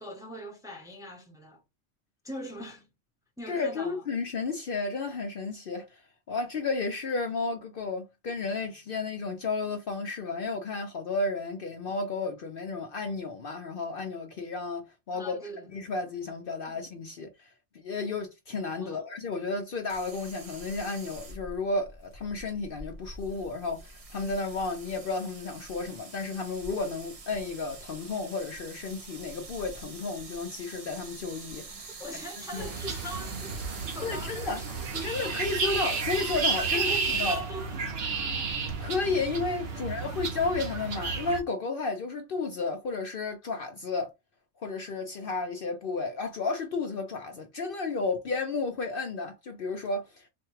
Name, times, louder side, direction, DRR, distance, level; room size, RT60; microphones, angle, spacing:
voice 1, 0.0-1.6 2.2-2.9 3.4-4.0 15.1-15.7 16.7-16.8 18.7-19.1 32.0-35.0 36.7-38.5 39.7-40.2, right 1 dB, 5° right, 0.7 m, -42 dB
voice 2, 3.5-6.0 6.3-15.4 15.7-31.9 32.5-32.7 34.0-34.6 35.0-37.4 38.8-44.1 44.6-50.3, left 3 dB, 55° left, 0.7 m, -32 dB
sound 1, 19.9-38.8, right 3 dB, 40° right, 0.6 m, -46 dB
sound 2, 32.6-41.4, right 4 dB, 55° right, 1.0 m, -32 dB
4.2 x 2.2 x 3.1 m
omnidirectional pair, 1.3 m